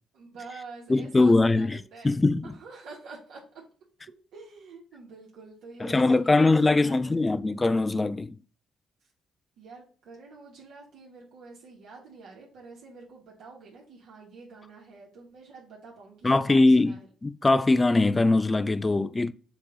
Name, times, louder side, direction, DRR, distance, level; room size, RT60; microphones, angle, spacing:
voice 1, 0.1-2.1 2.4-3.6 4.3-7.2 9.6-17.1, right 4 dB, 85° right, 2.4 m, -47 dB
voice 2, 0.9-1.8 2.0-2.5 5.8-8.4 16.2-19.3, left 2 dB, 20° left, 0.5 m, -22 dB
7.2 x 3.0 x 5.4 m
cardioid pair, 90°, 0 cm